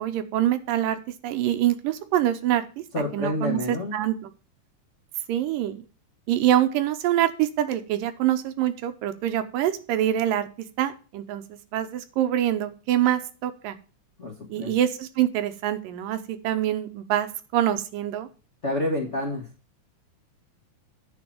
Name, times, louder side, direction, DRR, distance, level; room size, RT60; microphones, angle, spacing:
voice 1, 0.0-2.8 3.1-4.3 5.3-5.8 6.3-10.5 10.8-13.8 14.5-18.3, right 12 dB, 85° right, 9 dB, 2.5 m, -25 dB
voice 2, 2.9-4.0 14.2-14.7 18.6-19.4, left 1 dB, 65° left, 0 dB, 0.7 m, -28 dB
9.8 x 4.8 x 7.2 m, 0.37 s
omnidirectional pair, 3.9 m